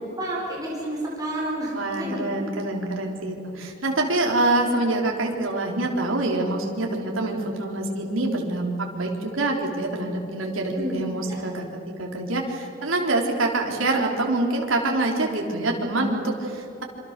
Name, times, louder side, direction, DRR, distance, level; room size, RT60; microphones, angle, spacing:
voice 1, 0.2-2.4 10.8-11.0 11.2-11.4, right 1 dB, 20° right, -4 dB, 4.4 m, -30 dB
voice 2, 1.7-16.8, right 2 dB, 90° right, 0 dB, 3.6 m, -25 dB
27.0 x 25.5 x 6.6 m, 2.8 s
head